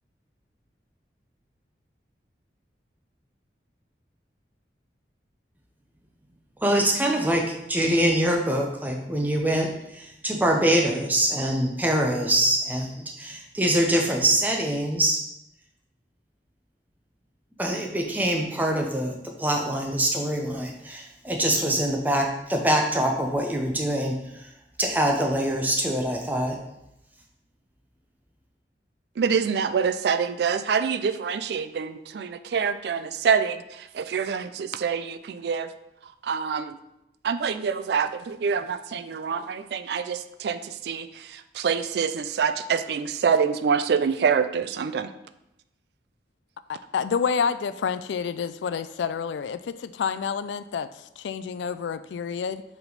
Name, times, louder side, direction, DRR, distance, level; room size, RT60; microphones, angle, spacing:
voice 1, 6.6-15.2 17.6-24.1 24.4-24.5 24.8-26.5, right 1 dB, 10° right, 1 dB, 0.7 m, -24 dB
voice 2, 29.2-35.7 36.2-36.8 37.2-45.1, right 6 dB, 70° right, 11 dB, 0.3 m, -26 dB
voice 3, 46.9-50.9 51.2-52.6, left 6 dB, 90° left, 14 dB, 0.3 m, -28 dB
7.1 x 3.5 x 3.9 m, 0.86 s
head